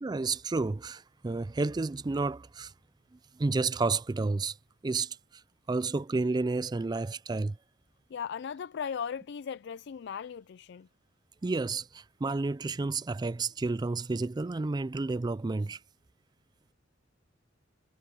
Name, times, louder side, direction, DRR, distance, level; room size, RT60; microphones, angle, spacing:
voice 1, 0.0-2.7 3.4-4.6 4.8-5.2 5.7-7.6 11.4-15.8, right 3 dB, 20° right, 0.3 m, -31 dB
voice 2, 8.1-10.9, left 7 dB, 60° left, 0.4 m, -37 dB
head